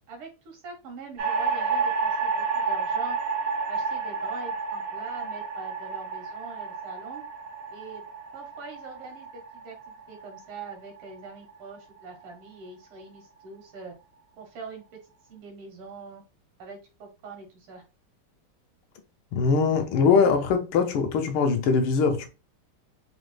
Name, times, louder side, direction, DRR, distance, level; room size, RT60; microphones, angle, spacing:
voice 1, 0.1-3.2 3.7-7.2 7.7-8.0 8.3-13.9 14.4-14.8 15.3-16.2 16.6-17.8, right 4 dB, 90° right, 2.1 m, -43 dB
sound 1, 1.2-11.5, right 5 dB, 70° right, 0.8 m, -30 dB
voice 2, 19.3-22.3, left 5 dB, 75° left, 1.5 m, -22 dB
4.7 x 2.0 x 3.2 m
omnidirectional pair, 2.4 m